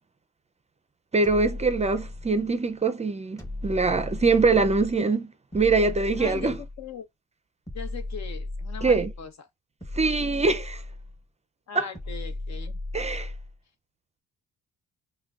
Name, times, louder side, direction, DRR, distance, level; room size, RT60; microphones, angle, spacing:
voice 1, 1.1-5.3 5.5-6.6 8.8-9.1 9.9-10.8 11.7-11.9 12.9-13.3, right 4 dB, 25° right, 0.5 m, -23 dB
sound 1, 1.2-2.6 3.4-5.0 5.5-6.9 7.7-9.3 9.8-11.2 11.9-13.6, left 2 dB, 10° left, 1.1 m, -36 dB
voice 2, 6.2-7.1 7.7-9.3 11.7-12.8, left 7 dB, 60° left, 1.0 m, -39 dB
5.7 x 2.2 x 2.4 m
cardioid pair, 90°, 30 cm